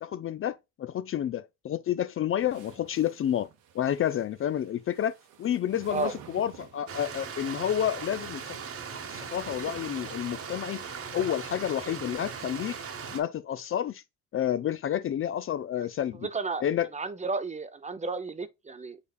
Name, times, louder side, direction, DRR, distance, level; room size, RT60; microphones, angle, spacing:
voice 1, 0.0-3.5 3.7-8.6 9.1-10.8 11.1-12.7 13.1-14.0 14.3-16.3 16.6-16.9, left 10 dB, 45° left, 0.4 m, -30 dB
sound 1, 2.4-7.1 8.1-10.5, right 8 dB, 85° right, 1.1 m, -51 dB
Stream, 6.9-13.2, right 6 dB, 50° right, 1.1 m, -39 dB
voice 2, 16.2-16.6 16.9-19.0, right 4 dB, 25° right, 0.7 m, -32 dB
6.6 x 3.4 x 2.4 m
cardioid pair, 90°, 30 cm